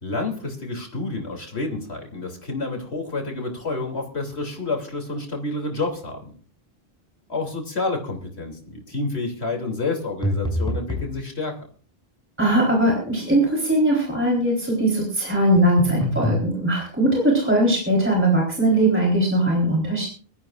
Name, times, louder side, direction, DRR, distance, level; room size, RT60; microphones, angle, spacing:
voice 1, 0.0-6.2 7.3-11.6, left 3 dB, 85° left, 2 dB, 3.3 m, -29 dB
sound 1, 10.2-11.1 15.6-16.4, left 1 dB, 5° left, 6.1 m, -25 dB
voice 2, 12.4-20.1, right 1 dB, 10° right, -2 dB, 3.9 m, -20 dB
23.0 x 13.5 x 2.5 m, 0.41 s
omnidirectional pair, 1.1 m